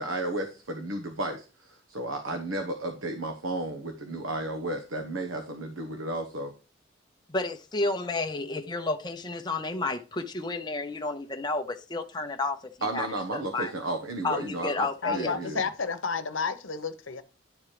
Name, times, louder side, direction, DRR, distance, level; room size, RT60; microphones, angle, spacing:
voice 1, 0.0-6.5 12.8-15.6, right 2 dB, 80° right, 1.2 m, -33 dB
voice 2, 7.3-12.6 12.9-13.1 13.3-13.7 14.2-15.4, left 2 dB, 20° left, 0.7 m, -31 dB
voice 3, 15.0-17.2, left 5 dB, 75° left, 1.0 m, -31 dB
11.0 x 4.5 x 5.0 m
head